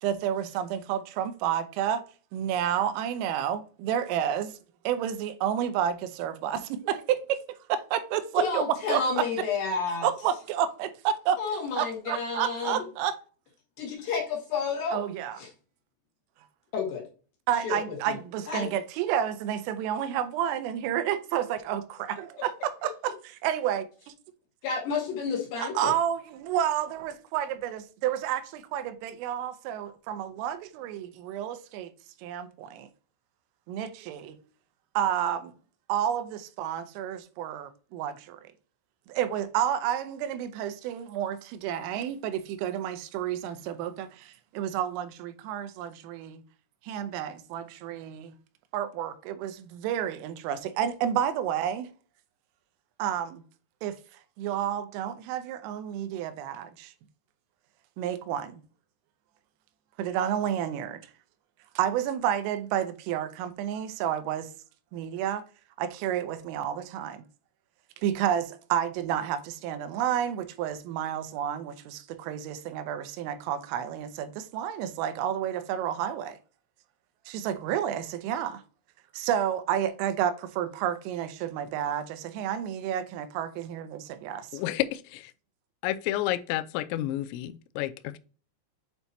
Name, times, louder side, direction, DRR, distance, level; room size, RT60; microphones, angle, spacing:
voice 1, 0.0-2.0 2.3-4.6 4.8-7.4 7.7-9.0 10.0-11.4 11.8-13.1 14.9-15.4 17.5-23.1 23.4-24.1 25.6-31.9 32.2-32.9 33.7-34.4 35.0-35.5 35.9-38.4 39.1-46.4 46.8-48.3 48.7-51.9 53.0-53.4 53.8-54.0 54.4-56.9 58.0-58.6 60.0-61.0 61.8-64.5 64.9-65.4 65.8-67.2 68.0-76.4 77.3-78.6 79.1-84.6, right 10 dB, 90° right, 3.4 m, -30 dB
voice 2, 8.4-10.1 11.4-12.8 13.8-15.0 15.4-15.5 16.7-17.0 17.6-18.2 18.5-18.7 24.6-25.9, left 5 dB, 65° left, 2.5 m, -30 dB
voice 3, 84.5-85.3 85.8-88.2, left 14 dB, 90° left, 2.5 m, -30 dB
8.4 x 4.5 x 2.7 m
omnidirectional pair, 5.7 m